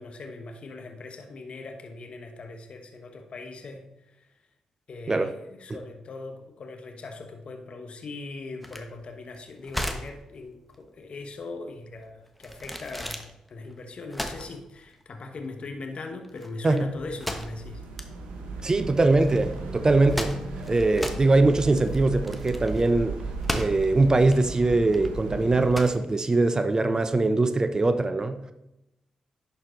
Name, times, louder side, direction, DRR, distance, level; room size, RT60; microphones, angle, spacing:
voice 1, 0.0-3.9 4.9-13.2 13.5-17.8, left 3 dB, 55° left, 4 dB, 1.1 m, -40 dB
sound 1, 8.6-27.2, equal, ahead, 1.2 m, -37 dB
sound 2, 16.8-25.7, right 3 dB, 85° right, 1.0 m, -36 dB
voice 2, 18.6-20.3 20.7-23.2 23.5-28.5, right 2 dB, 30° right, 10 dB, 0.7 m, -22 dB
11.0 x 4.5 x 3.8 m, 0.90 s
supercardioid pair, 45°, 2 cm